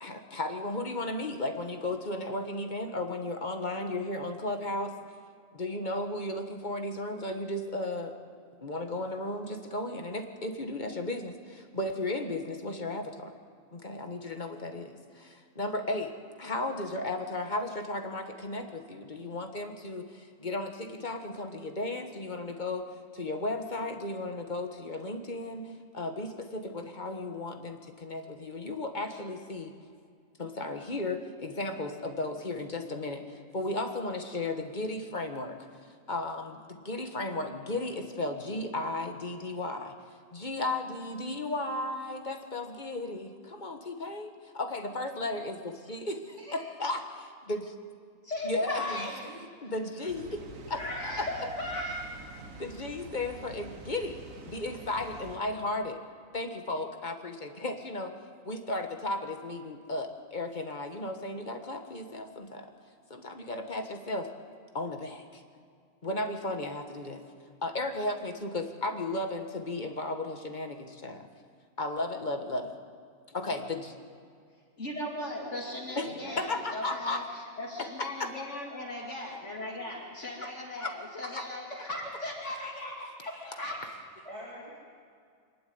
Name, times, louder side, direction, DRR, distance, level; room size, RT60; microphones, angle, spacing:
voice 1, 0.0-4.9 5.5-8.2 8.6-13.3 13.7-22.8 23.1-29.7 30.4-35.6 36.1-39.9 40.3-47.7 48.4-49.1 49.6-50.4 50.7-51.3 52.6-56.0 56.3-58.1 58.4-62.7 63.1-64.3 64.7-65.4 66.0-67.2 67.6-71.3 71.8-72.7 73.3-73.9 76.0-76.1 76.4-77.2 78.2-78.3 80.4-80.5 80.8-80.9 81.2-81.5, left 2 dB, 35° left, 5 dB, 1.6 m, -35 dB
voice 2, 48.2-49.7 50.6-52.1 74.8-83.8, left 1 dB, 60° left, -2 dB, 2.8 m, -37 dB
Water, 50.1-55.4, right 3 dB, 80° right, 1.9 m, -47 dB
voice 3, 76.0-76.6 84.2-84.7, equal, 20° right, -6 dB, 3.6 m, -44 dB
25.0 x 11.5 x 9.5 m, 2.3 s
omnidirectional pair, 1.4 m